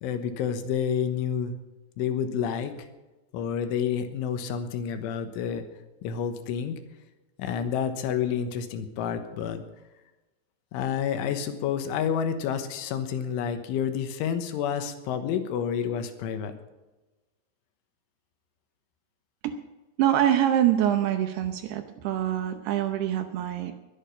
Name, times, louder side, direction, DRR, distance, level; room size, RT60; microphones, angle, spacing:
voice 1, 0.0-1.5 2.0-2.7 3.3-5.6 6.0-6.8 7.4-9.6 10.7-16.5, left 8 dB, 85° left, 8 dB, 3.7 m, -29 dB
voice 2, 20.0-23.7, right 11 dB, 75° right, 8 dB, 2.6 m, -25 dB
22.0 x 8.9 x 5.5 m, 1.1 s
omnidirectional pair, 5.5 m